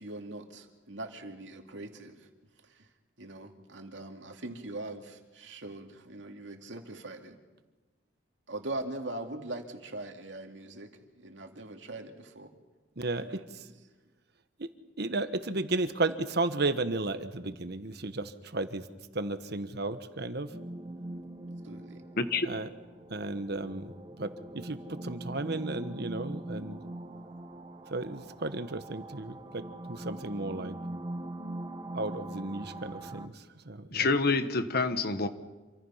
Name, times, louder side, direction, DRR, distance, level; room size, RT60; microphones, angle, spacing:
voice 1, 0.0-2.2 2.8-2.9 3.2-7.4 8.5-10.9 11.2-12.5 13.2-13.4 21.6-22.0, right 2 dB, 80° right, 4 dB, 2.5 m, -41 dB
voice 2, 15.0-18.8 19.1-20.5 22.4-22.7 23.1-23.9 24.2-24.3 24.6-24.8 25.0-26.8 27.9-29.6 29.9-30.7 31.9-33.3 33.7-33.8, right 2 dB, 60° right, 10 dB, 1.4 m, -33 dB
sound 1, 20.5-33.3, right 1 dB, 25° right, 1.3 m, -42 dB
voice 3, 22.2-22.5 33.9-35.3, left 3 dB, 55° left, 10 dB, 1.4 m, -27 dB
27.5 x 26.0 x 5.8 m, 1.2 s
head